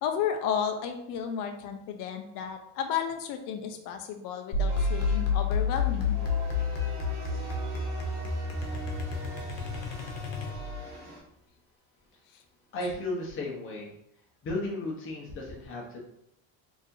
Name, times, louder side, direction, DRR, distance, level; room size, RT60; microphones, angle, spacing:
voice 1, 0.0-6.2 12.3-12.4 12.8-12.9, left 8 dB, 65° left, 5 dB, 0.6 m, -33 dB
sound 1, 4.5-10.9, left 4 dB, 90° left, 1.0 m, -30 dB
sound 2, 4.7-11.2, right 1 dB, 25° right, 1.3 m, -43 dB
voice 2, 12.7-13.9 14.4-16.0, left 2 dB, 35° left, -2 dB, 1.0 m, -34 dB
4.1 x 2.9 x 2.6 m, 0.75 s
cardioid pair, 155°, 36 cm